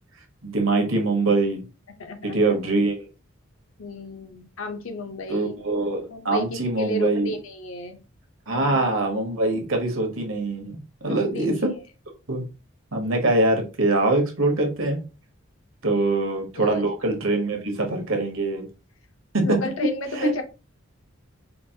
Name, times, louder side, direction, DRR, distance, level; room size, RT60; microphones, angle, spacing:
voice 1, 0.4-1.6 2.2-3.1 5.3-7.3 8.5-10.8 11.0-11.7 12.3-12.4 12.9-15.0 15.8-18.7 19.3-19.6 20.1-20.3, right 2 dB, 75° right, 3 dB, 1.2 m, -23 dB
voice 2, 2.0-2.6 3.8-5.6 6.1-8.0 8.7-8.8 11.0-11.7 15.9-16.1 16.5-16.9 19.4-20.4, left 1 dB, 75° left, 6 dB, 0.9 m, -33 dB
5.1 x 2.5 x 2.8 m, 0.31 s
head